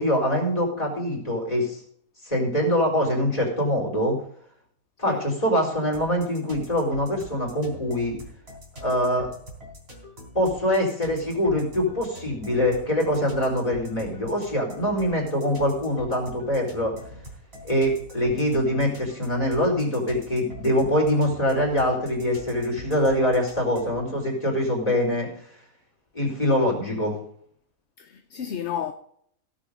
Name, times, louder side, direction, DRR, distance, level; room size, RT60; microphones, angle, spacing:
voice 1, 0.0-1.8 2.2-4.1 5.0-8.2 8.8-9.3 10.3-16.9 17.6-25.3 26.1-27.1, equal, 25° left, 4.5 m, -24 dB
sound 1, 5.9-24.0, equal, 40° right, 3.9 m, -43 dB
voice 2, 28.0-28.9, left 9 dB, 55° left, 0.9 m, -31 dB
16.5 x 7.3 x 5.2 m
omnidirectional pair, 1.5 m